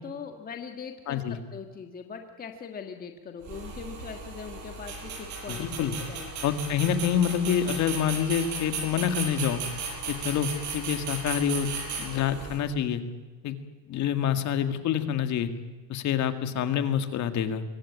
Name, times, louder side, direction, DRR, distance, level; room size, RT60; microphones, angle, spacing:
voice 1, 0.0-1.2 1.5-6.3, left 6 dB, 20° left, 5 dB, 1.5 m, -41 dB
voice 2, 1.1-1.4 5.5-5.9 6.4-9.6 10.1-11.7 12.0-13.0 13.4-13.6 13.9-15.5 15.9-17.6, left 8 dB, 40° left, 9 dB, 2.0 m, -27 dB
sound 1, 3.4-12.6, right 4 dB, 40° right, 7.7 m, -36 dB
23.5 x 16.5 x 8.7 m, 1.3 s
supercardioid pair, 145°, 45 cm